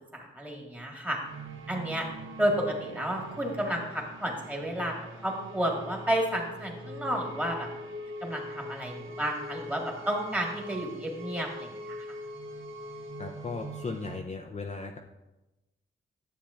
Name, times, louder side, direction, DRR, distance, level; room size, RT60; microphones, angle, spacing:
voice 1, 0.1-1.2 1.7-2.1 2.4-4.9 5.2-7.7 8.2-12.0, equal, 5° right, 0 dB, 1.6 m, -31 dB
sound 1, 1.2-14.2, equal, 80° right, 0.7 m, -42 dB
voice 2, 13.2-15.0, left 4 dB, 35° left, 3 dB, 0.5 m, -37 dB
10.0 x 7.3 x 2.5 m, 1.0 s
wide cardioid pair, 100°, 20 cm